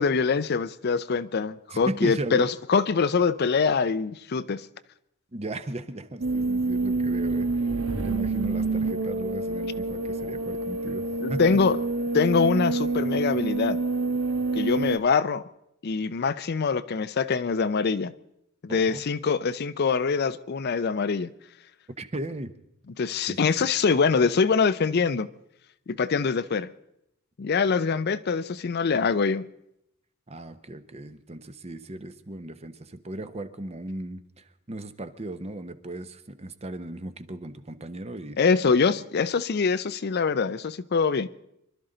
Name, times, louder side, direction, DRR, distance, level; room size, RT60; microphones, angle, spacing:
voice 1, 0.0-4.7 11.2-11.8 12.1-13.8 14.5-15.4 15.8-18.1 18.6-21.3 23.0-25.3 25.9-26.7 27.4-29.5 38.4-41.3, left 5 dB, 50° left, 0.5 m, -24 dB
voice 2, 1.7-2.5 5.3-7.5 8.0-11.4 18.7-19.0 22.0-22.5 23.3-23.7 30.3-38.4, right 1 dB, 30° right, 0.8 m, -36 dB
sound 1, 6.2-15.0, right 3 dB, 75° right, 1.2 m, -27 dB
25.0 x 12.5 x 3.9 m
head